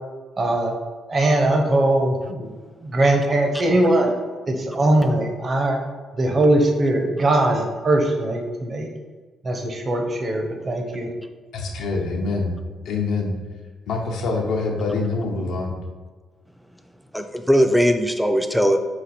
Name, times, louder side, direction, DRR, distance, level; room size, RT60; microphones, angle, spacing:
voice 1, 0.4-0.7 1.1-2.5 2.8-4.1 4.5-5.8 6.2-8.9 9.4-11.1, right 1 dB, 40° right, 2 dB, 0.7 m, -20 dB
voice 2, 11.5-12.5 12.8-13.4 13.9-15.8, left 3 dB, 80° left, 1 dB, 0.6 m, -25 dB
voice 3, 17.1-18.8, equal, ahead, 6 dB, 0.4 m, -19 dB
4.1 x 2.5 x 4.2 m, 1.4 s
cardioid pair, 90°, 0 cm